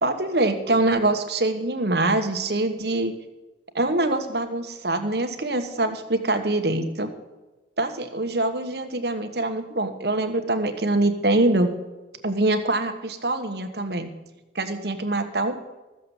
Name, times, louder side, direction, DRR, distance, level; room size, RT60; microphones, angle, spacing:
voice 1, 0.0-3.1 3.7-7.1 7.8-11.7 12.2-14.1 14.5-15.6, right 2 dB, 65° right, 7 dB, 1.3 m, -24 dB
14.0 x 7.6 x 7.2 m, 1.1 s
head